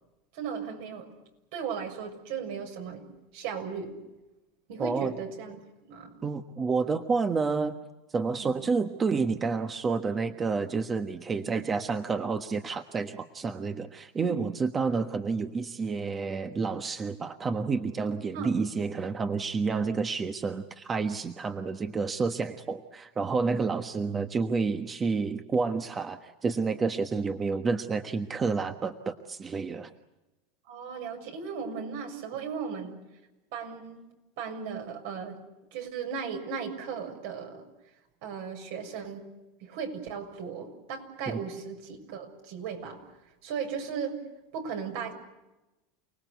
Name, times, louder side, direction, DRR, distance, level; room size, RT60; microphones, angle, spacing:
voice 1, 0.3-1.1 1.5-3.1 3.3-3.9 4.7-5.6 5.9-6.1 8.3-8.6 11.4-11.5 14.2-14.4 18.3-18.6 30.7-33.0 33.5-34.0 34.4-35.4 35.7-37.6 38.2-39.3 39.6-43.0 43.4-44.1 44.5-45.1, right 6 dB, 70° right, 5 dB, 6.7 m, -36 dB
voice 2, 4.8-5.1 6.2-7.8 8.1-29.9, right 4 dB, 20° right, 8 dB, 1.3 m, -29 dB
29.0 x 19.5 x 8.2 m, 1.0 s
supercardioid pair, 130°, 0 cm